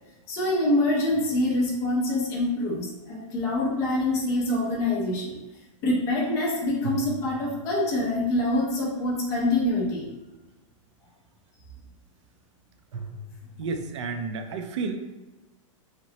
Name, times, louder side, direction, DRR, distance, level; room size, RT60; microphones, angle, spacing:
voice 1, 0.3-5.4 5.8-10.1, left 1 dB, 15° left, -4 dB, 0.4 m, -25 dB
sound 1, 1.1-2.3 6.8-8.4 12.9-14.1, right 2 dB, 90° right, 0.7 m, -41 dB
voice 2, 13.6-15.0, right 4 dB, 60° right, 6 dB, 0.4 m, -31 dB
2.8 x 2.0 x 2.7 m, 1.1 s
supercardioid pair, 170°, 17 cm